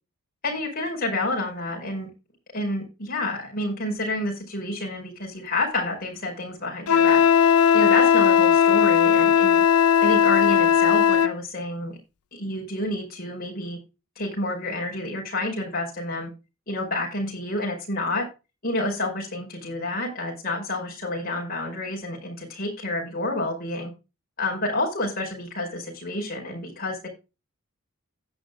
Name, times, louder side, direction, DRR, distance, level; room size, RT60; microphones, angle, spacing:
voice 1, 0.4-2.1 2.5-7.2 7.7-9.6 10.0-12.0 12.3-13.8 14.2-16.3 16.7-18.3 18.6-23.9 24.4-27.1, left 2 dB, 40° left, -1 dB, 5.1 m, -29 dB
Wind instrument woodwind instrument, 6.9-11.3, left 8 dB, 90° left, 0.7 m, -17 dB
16.0 x 8.7 x 2.3 m, 0.28 s
head